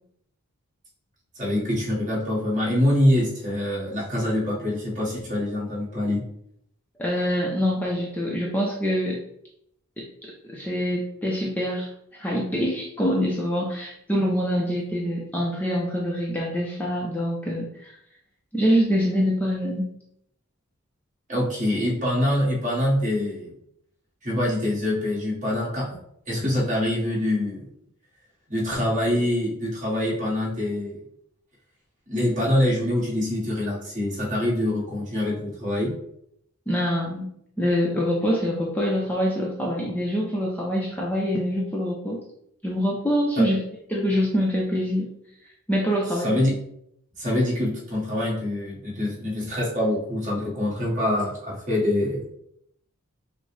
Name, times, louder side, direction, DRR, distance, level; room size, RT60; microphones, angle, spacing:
voice 1, 1.3-6.2 21.3-23.5 24.2-25.9 26.3-27.7 28.5-31.0 32.1-35.9 43.4-43.5 46.2-46.6 47.2-52.2, left 1 dB, 35° right, -5 dB, 1.6 m, -25 dB
voice 2, 7.0-9.2 10.0-17.9 18.5-19.9 36.7-37.3 37.6-42.2 42.6-43.6 43.9-45.1 45.7-46.3, equal, 5° left, -3 dB, 0.5 m, -25 dB
5.9 x 2.1 x 3.3 m, 0.74 s
head